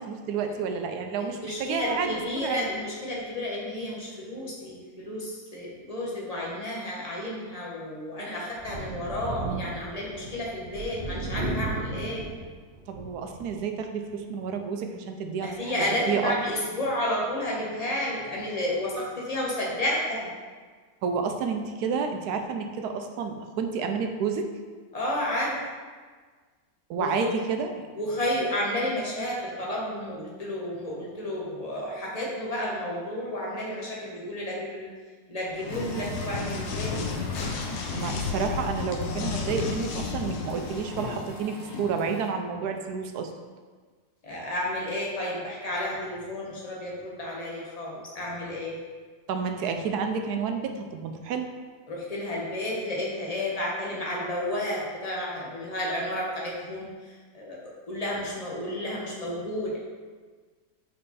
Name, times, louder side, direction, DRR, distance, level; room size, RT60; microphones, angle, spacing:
voice 1, 0.0-2.7 12.9-15.7 16.1-16.4 21.0-24.5 26.9-27.8 37.9-43.3 49.3-51.5, right 5 dB, 70° right, 5 dB, 1.1 m, -30 dB
voice 2, 1.2-12.3 15.4-20.3 24.9-25.6 26.9-27.3 27.9-34.9 35.3-37.0 44.2-48.8 51.9-59.8, left 1 dB, 25° left, -4 dB, 1.1 m, -31 dB
Thunder, 8.5-13.6 14.1-14.2 15.5-15.6, right 2 dB, 50° right, 0.5 m, -35 dB
sound 1, 35.6-41.3, left 5 dB, 75° left, 1.3 m, -33 dB
sound 2, 35.6-42.3, left 2 dB, 50° left, 0.9 m, -38 dB
5.4 x 4.3 x 4.1 m, 1.5 s
omnidirectional pair, 1.8 m